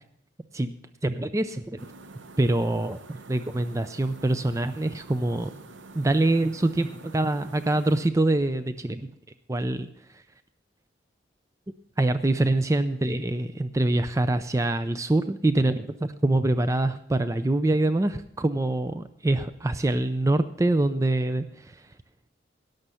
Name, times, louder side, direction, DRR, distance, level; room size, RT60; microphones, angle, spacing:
voice 1, 1.0-1.8 2.4-3.0 3.3-5.5 5.9-9.1 9.5-10.2 12.0-21.9, right 2 dB, 15° right, 11 dB, 0.4 m, -25 dB
sound 1, 1.8-8.1, right 3 dB, 80° right, 0.7 m, -47 dB
17.0 x 6.6 x 5.6 m, 0.72 s
head